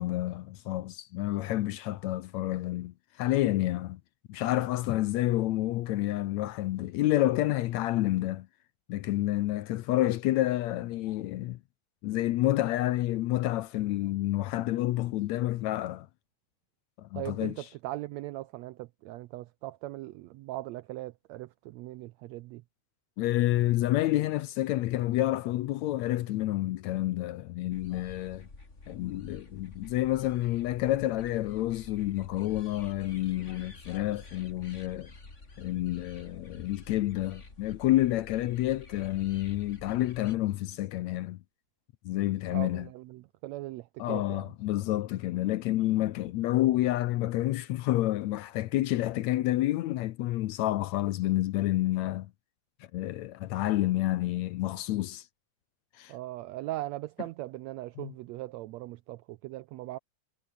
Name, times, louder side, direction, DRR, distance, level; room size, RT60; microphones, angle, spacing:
voice 1, 0.0-4.0 4.3-8.5 8.9-11.6 12.0-16.1 17.0-17.6 23.2-28.5 28.9-35.1 35.6-41.4 42.1-42.9 44.0-52.3 52.9-55.2 56.0-56.1 58.0-58.1, left 15 dB, 75° left, 1.8 m, -29 dB
voice 2, 17.1-22.6 42.5-44.5 56.1-60.0, right 17 dB, 90° right, 1.5 m, -39 dB
sound 1, 27.7-40.4, left 3 dB, 20° left, 3.7 m, -49 dB
omnidirectional pair, 3.7 m